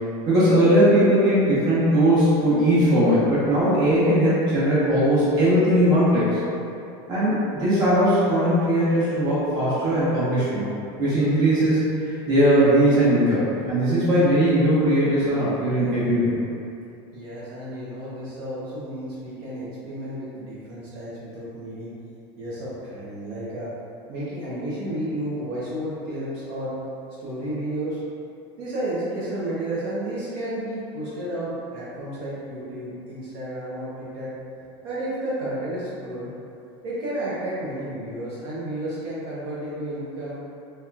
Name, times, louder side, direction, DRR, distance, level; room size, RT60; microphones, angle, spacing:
voice 1, 0.3-6.4 7.1-10.7 11.0-11.8 12.0-16.3, equal, 30° right, -10 dB, 1.1 m, -19 dB
voice 2, 17.1-21.9 22.4-23.7 24.1-26.7 27.2-28.0 28.6-34.3 34.8-36.3 36.8-40.4, right 1 dB, 70° right, -9 dB, 0.8 m, -32 dB
3.2 x 2.9 x 2.4 m, 2.6 s
supercardioid pair, 165°, 13 cm